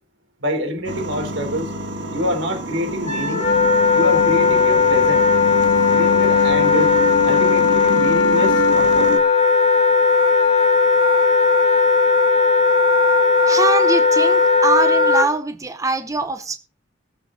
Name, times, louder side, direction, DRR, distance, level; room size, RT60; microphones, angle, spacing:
voice 1, 0.4-1.7 2.1-3.5 3.9-5.3 5.8-6.9 7.2-9.1, equal, 85° right, 3.8 m, -25 dB
sound 1, 0.8-9.2, left 1 dB, 70° right, 2.1 m, -26 dB
Wind instrument woodwind instrument, 3.0-15.3, left 4 dB, 35° left, 2.0 m, -16 dB
voice 2, 13.4-16.6, right 3 dB, 15° right, 0.7 m, -23 dB
18.5 x 7.3 x 4.0 m
head